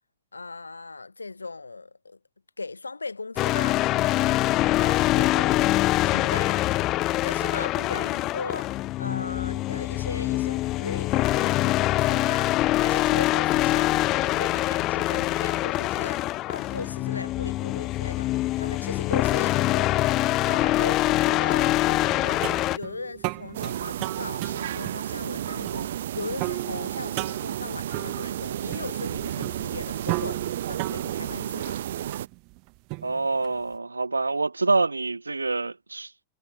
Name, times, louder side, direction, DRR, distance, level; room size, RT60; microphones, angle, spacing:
voice 1, 0.3-2.2 2.6-3.8 4.8-5.7 6.0-6.7 7.2-22.5 22.7-31.8, left 3 dB, 80° left, 5.8 m, -38 dB
sound 1, 3.4-22.8, left 17 dB, 35° left, 0.8 m, -24 dB
sound 2, 22.1-33.6, right 33 dB, 45° right, 2.5 m, -36 dB
sound 3, 23.5-32.3, right 11 dB, 60° right, 0.8 m, -32 dB
voice 2, 33.0-36.1, right 3 dB, 80° right, 1.0 m, -26 dB
figure-of-eight pair, 90°, 0 cm